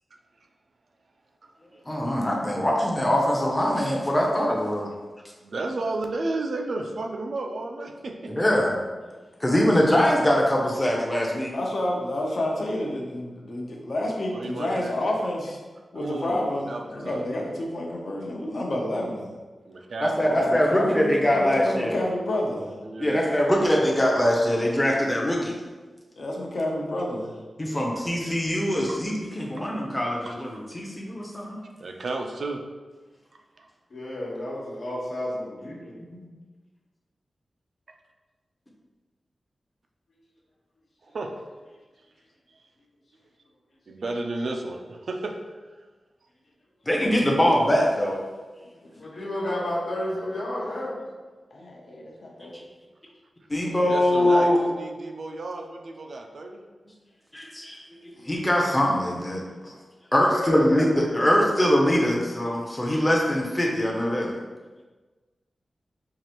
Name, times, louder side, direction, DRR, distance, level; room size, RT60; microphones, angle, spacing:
voice 1, 1.8-4.9 8.3-8.8 9.4-11.5 20.0-22.0 23.0-25.5 27.6-31.6 46.8-48.2 53.5-54.6 57.3-59.7 60.1-64.4, equal, 15° left, -2 dB, 0.6 m, -23 dB
voice 2, 5.4-8.3 14.3-14.9 15.9-17.2 19.7-20.3 22.8-23.3 27.6-27.9 29.6-29.7 30.3-30.4 31.8-32.6 33.6-33.7 41.1-41.3 43.9-45.4 53.9-56.6, right 2 dB, 65° right, 3 dB, 0.4 m, -32 dB
voice 3, 11.3-15.6 15.9-19.3 20.2-22.8 26.2-27.4 48.8-49.7 50.4-50.9 51.5-52.6, left 1 dB, 60° left, -2 dB, 0.7 m, -30 dB
voice 4, 33.9-36.0 49.0-51.0 60.2-62.2, left 1 dB, 75° left, -5 dB, 1.1 m, -32 dB
4.7 x 2.5 x 2.9 m, 1.3 s
wide cardioid pair, 125°, 0 cm